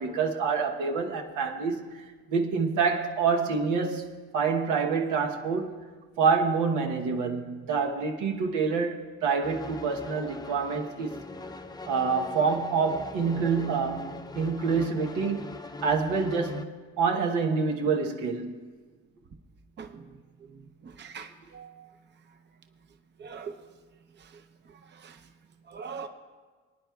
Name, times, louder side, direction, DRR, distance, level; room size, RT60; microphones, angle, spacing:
voice 1, 0.0-5.7 6.2-11.2 11.9-15.5 15.8-18.7, right 5 dB, 90° right, 1.0 m, -27 dB
sound 1, 9.4-16.7, left 2 dB, 15° left, 0.5 m, -41 dB
voice 2, 20.8-21.9 23.2-23.5 25.0-25.1 25.7-26.1, right 6 dB, 35° right, 0.6 m, -41 dB
24.5 x 9.5 x 2.3 m
cardioid pair, 90°, 30 cm